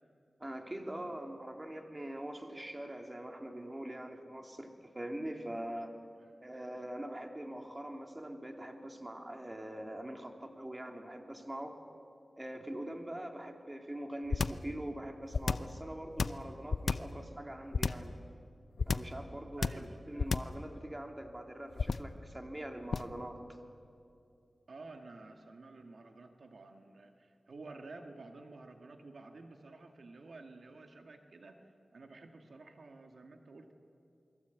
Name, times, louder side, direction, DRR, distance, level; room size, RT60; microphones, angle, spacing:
voice 1, 0.4-5.9 6.4-11.8 12.4-18.1 18.9-23.4, right 1 dB, 20° right, 3 dB, 2.8 m, -43 dB
sound 1, 14.3-14.7 15.3-15.8 16.2-17.2 17.7-18.1 18.8-19.2 19.6-19.9 20.2-20.6 21.8-22.2 22.9-23.2, left 4 dB, 80° left, 0.6 m, -31 dB
voice 2, 19.6-20.0 24.7-33.7, right 3 dB, 80° right, 4 dB, 1.9 m, -51 dB
28.5 x 22.0 x 8.3 m, 2.5 s
wide cardioid pair, 80°, 0 cm